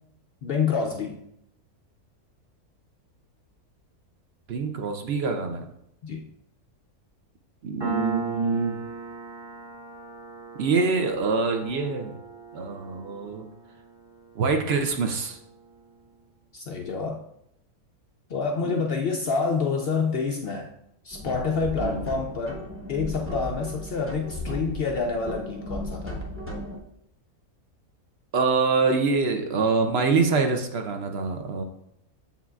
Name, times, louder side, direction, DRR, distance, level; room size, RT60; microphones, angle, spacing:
voice 1, 0.4-1.2 6.0-6.3 16.5-17.2 18.3-20.7 21.0-22.6 22.9-26.2, left 4 dB, 70° left, 2 dB, 0.5 m, -27 dB
voice 2, 4.5-5.7 7.6-8.8 10.5-12.2 12.5-13.5 14.4-15.4 18.6-18.9 21.8-22.0 28.3-31.6, right 4 dB, 60° right, 5 dB, 0.7 m, -25 dB
Piano, 7.8-15.0, right 3 dB, 40° right, 1.9 m, -36 dB
sound 1, 21.1-26.8, equal, 10° right, 0.8 m, -35 dB
7.3 x 5.7 x 2.4 m, 0.76 s
omnidirectional pair, 1.6 m